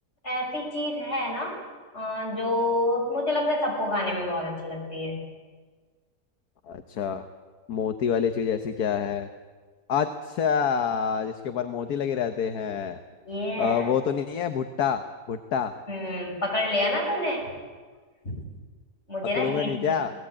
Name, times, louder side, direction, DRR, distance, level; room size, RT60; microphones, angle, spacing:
voice 1, 0.2-1.6 1.9-5.2 13.2-13.9 15.9-17.5 18.2-18.4 19.1-20.0, left 1 dB, 45° left, -1 dB, 6.8 m, -28 dB
voice 2, 6.7-7.2 7.7-9.3 9.9-13.0 13.6-15.0 15.3-15.7 19.4-20.1, left 7 dB, 65° left, 8 dB, 1.5 m, -27 dB
27.0 x 18.5 x 8.8 m, 1.5 s
omnidirectional pair, 1.8 m